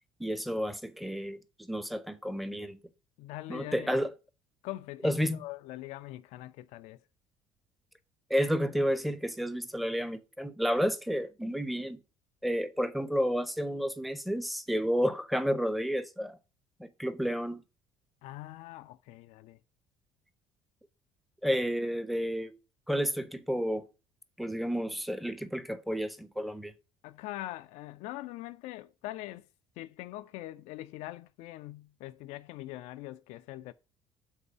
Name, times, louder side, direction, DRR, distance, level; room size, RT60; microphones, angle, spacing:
voice 1, 0.2-2.8 3.5-4.1 5.0-5.4 8.3-12.0 12.4-16.4 16.8-17.6 21.4-22.5 22.9-23.9 24.4-26.7, equal, ahead, 0.8 m, -31 dB
voice 2, 3.2-4.0 4.6-7.0 18.2-19.6 27.0-29.5 29.8-33.7, left 16 dB, 55° left, 0.4 m, -43 dB
7.3 x 3.9 x 6.6 m
figure-of-eight pair, 55°, 14 cm